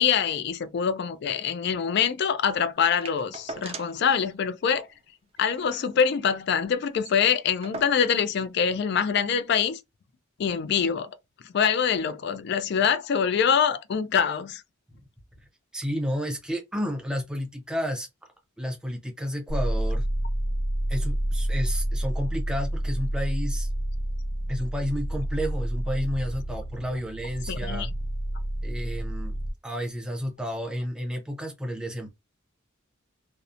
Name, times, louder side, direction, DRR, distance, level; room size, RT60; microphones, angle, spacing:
voice 1, 0.0-4.9 5.4-9.8 10.4-11.2 11.5-14.6 27.5-27.9, left 7 dB, 50° left, 0.3 m, -24 dB
sound 1, 2.8-4.1 4.4-4.5 4.8-5.0 5.4-6.5 6.7-6.8 7.0-8.3 9.2-9.3, right 3 dB, 30° right, 0.3 m, -41 dB
voice 2, 15.7-18.1 18.6-20.1 20.9-23.7 24.5-27.9 28.6-29.3 29.6-32.1, equal, 5° right, 0.7 m, -31 dB
sound 2, 19.5-29.5, right 1 dB, 85° right, 0.9 m, -29 dB
2.8 x 2.0 x 2.4 m
head